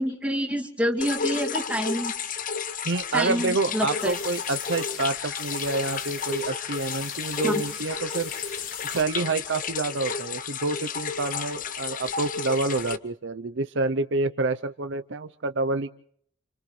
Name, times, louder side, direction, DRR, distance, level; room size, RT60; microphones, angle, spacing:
voice 1, 0.0-2.1 3.1-4.1 7.4-7.5, equal, 5° right, 2 dB, 2.5 m, -27 dB
sound 1, 1.0-13.0, left 6 dB, 45° left, 0.8 m, -32 dB
voice 2, 2.8-8.3 8.8-15.9, right 3 dB, 65° right, 10 dB, 0.8 m, -28 dB
sound 2, 3.9-9.0, left 7 dB, 85° left, 2.8 m, -42 dB
30.0 x 27.5 x 3.3 m, 0.63 s
head